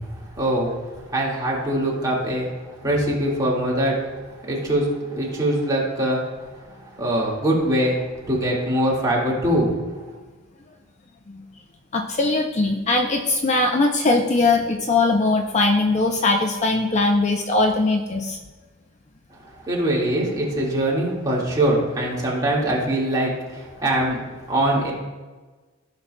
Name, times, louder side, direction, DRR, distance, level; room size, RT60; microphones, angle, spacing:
voice 1, 0.3-2.5 2.8-6.3 6.9-9.8 19.6-24.9, right 1 dB, 20° right, -4 dB, 1.9 m, -23 dB
voice 2, 11.9-18.4, left 2 dB, 35° left, 2 dB, 0.5 m, -20 dB
15.0 x 5.7 x 2.2 m, 1.3 s
head